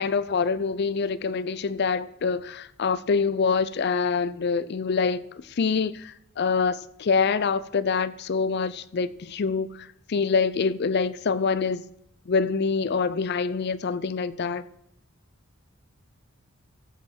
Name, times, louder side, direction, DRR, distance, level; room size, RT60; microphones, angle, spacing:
voice 1, 0.0-11.8 12.3-14.6, left 5 dB, 50° left, 0.4 m, -25 dB
14.5 x 5.5 x 6.2 m
head